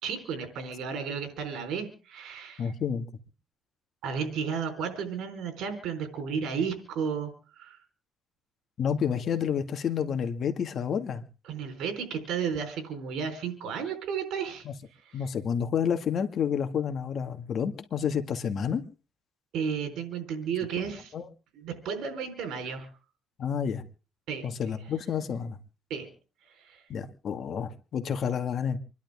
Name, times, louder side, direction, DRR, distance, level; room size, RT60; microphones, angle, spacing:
voice 1, 0.0-2.7 4.0-7.8 11.5-14.7 15.0-15.3 19.5-21.1 21.5-22.9 24.3-24.5 25.9-26.1 26.4-26.8, right 6 dB, 85° right, 6 dB, 4.3 m, -33 dB
voice 2, 2.6-3.1 8.8-11.2 14.7-14.8 15.1-18.8 21.1-21.2 23.4-23.8 24.4-25.6 26.9-28.8, left 7 dB, 60° left, 8 dB, 2.0 m, -29 dB
27.5 x 11.5 x 3.7 m, 0.36 s
cardioid pair, 90°, 0 cm